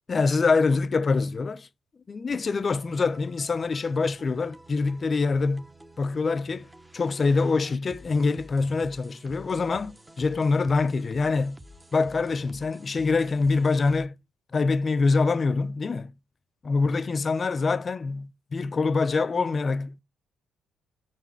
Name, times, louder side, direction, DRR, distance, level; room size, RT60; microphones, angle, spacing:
voice 1, 0.1-1.7 2.1-5.7 6.0-6.7 6.9-11.6 11.9-14.2 14.5-16.1 16.6-20.0, left 4 dB, 35° left, 0.5 m, -25 dB
sound 1, 2.3-14.1, equal, 10° right, 0.8 m, -50 dB
5.9 x 4.8 x 4.4 m
cardioid pair, 90°, 0 cm